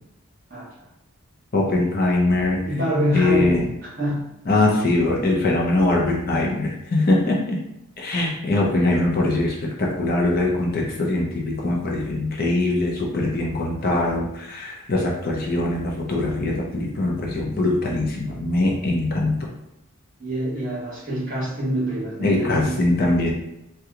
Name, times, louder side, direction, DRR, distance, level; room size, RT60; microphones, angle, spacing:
voice 1, 1.5-2.7 3.1-3.7 4.5-7.6 8.0-19.5 22.2-23.3, left 2 dB, 45° left, -1 dB, 0.5 m, -22 dB
voice 2, 2.6-3.5 4.0-4.3 20.2-22.7, equal, 40° right, -5 dB, 1.1 m, -25 dB
2.9 x 2.3 x 3.6 m, 0.89 s
head